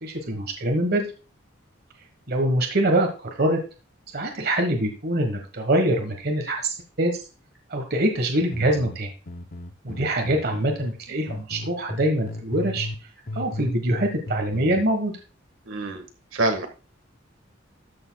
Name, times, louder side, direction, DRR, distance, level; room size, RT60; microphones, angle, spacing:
voice 1, 0.0-1.1 2.3-3.6 4.1-7.2 7.7-9.1 9.8-12.9 13.3-15.1, right 1 dB, 50° right, 4 dB, 1.4 m, -24 dB
sound 1, 8.4-11.0 11.3-13.0 13.3-14.9, left 2 dB, 45° left, 0.8 m, -35 dB
voice 2, 15.6-16.0 16.3-16.7, right 2 dB, 80° right, 5 dB, 1.6 m, -25 dB
13.0 x 7.0 x 2.3 m, 0.33 s
head